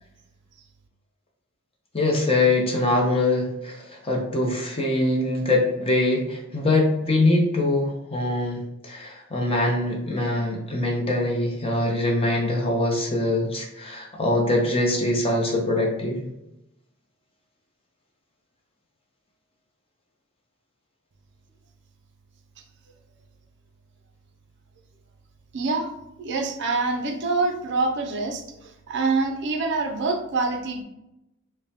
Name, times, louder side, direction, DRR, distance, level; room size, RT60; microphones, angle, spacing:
voice 1, 1.9-16.3, left 2 dB, 25° left, 0 dB, 0.7 m, -23 dB
voice 2, 25.5-25.9 26.2-30.8, right 3 dB, 55° right, 4 dB, 0.5 m, -26 dB
5.1 x 2.1 x 2.8 m, 0.88 s
head